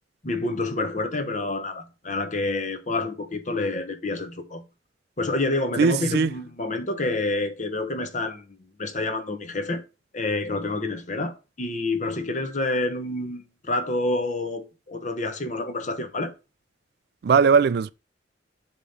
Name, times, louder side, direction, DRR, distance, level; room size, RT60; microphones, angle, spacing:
voice 1, 0.2-4.6 5.2-9.8 10.1-16.3, left 2 dB, 40° left, 0.8 m, -28 dB
voice 2, 5.8-6.3 17.2-17.9, right 5 dB, 55° right, 0.3 m, -19 dB
6.9 x 3.0 x 5.2 m
head